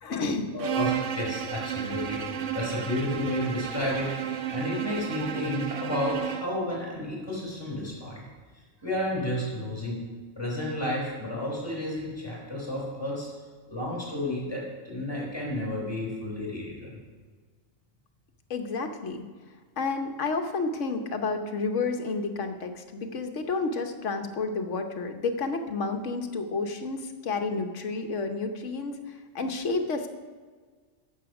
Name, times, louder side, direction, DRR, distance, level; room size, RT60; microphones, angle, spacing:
voice 1, 0.0-0.4 18.5-19.2 19.8-28.9 29.3-30.1, left 4 dB, 70° left, 6 dB, 1.3 m, -30 dB
voice 2, 0.5-2.2 2.5-4.2 4.5-8.2 8.8-10.0 10.4-13.3 13.7-17.0, left 1 dB, 20° left, -4 dB, 4.2 m, -31 dB
Bowed string instrument, 0.6-6.6, right 9 dB, 75° right, 1.1 m, -32 dB
11.5 x 7.7 x 6.0 m, 1.5 s
omnidirectional pair, 1.3 m